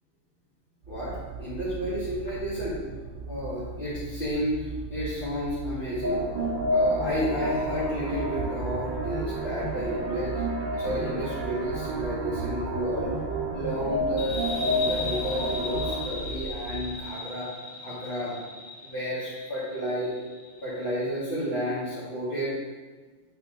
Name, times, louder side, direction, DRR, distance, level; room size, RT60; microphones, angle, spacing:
sound 1, 0.8-17.1, right 5 dB, 80° right, 0.9 m, -39 dB
voice 1, 0.9-2.8 3.3-6.2 6.7-10.4 10.7-13.2 13.5-17.5 17.8-18.4 18.8-20.2 20.6-22.6, equal, 45° left, -12 dB, 2.0 m, -31 dB
sound 2, 6.0-16.0, equal, 45° right, 1.3 m, -30 dB
sound 3, 14.2-21.4, left 3 dB, 30° left, 0.5 m, -38 dB
8.1 x 4.4 x 3.8 m, 1.3 s
omnidirectional pair, 1.2 m